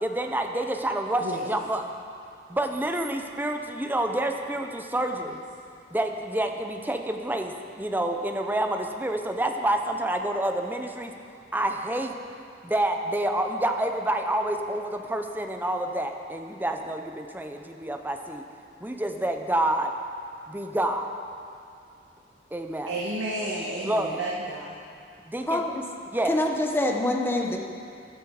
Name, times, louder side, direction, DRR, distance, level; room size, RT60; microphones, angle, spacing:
voice 1, 0.0-1.8 2.5-5.4 5.9-11.1 11.5-12.2 12.6-18.4 18.8-19.9 20.5-21.1 22.5-22.9 23.8-24.2 25.3-25.7 26.1-26.4, right 1 dB, 10° right, 4 dB, 0.8 m, -28 dB
voice 2, 1.2-1.5 22.9-24.7, right 1 dB, 75° right, -6 dB, 1.8 m, -31 dB
voice 3, 25.5-25.8 26.3-27.6, left 1 dB, 10° left, 1 dB, 1.2 m, -25 dB
15.0 x 12.0 x 4.9 m, 2.5 s
head